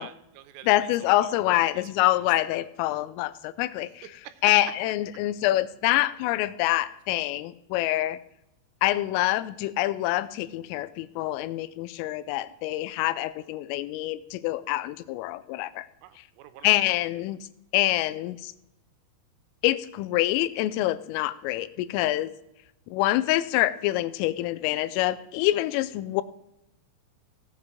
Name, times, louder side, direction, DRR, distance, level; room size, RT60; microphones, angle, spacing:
voice 1, 0.0-2.3 4.2-4.4 16.0-17.0, right 12 dB, 85° right, 11 dB, 3.3 m, -48 dB
voice 2, 0.7-4.0 4.4-8.2 8.8-15.9 16.6-17.4 17.7-18.5 19.6-22.3 22.9-26.2, left 16 dB, 85° left, 15 dB, 3.2 m, -26 dB
16.5 x 7.9 x 3.7 m, 0.84 s
omnidirectional pair, 5.8 m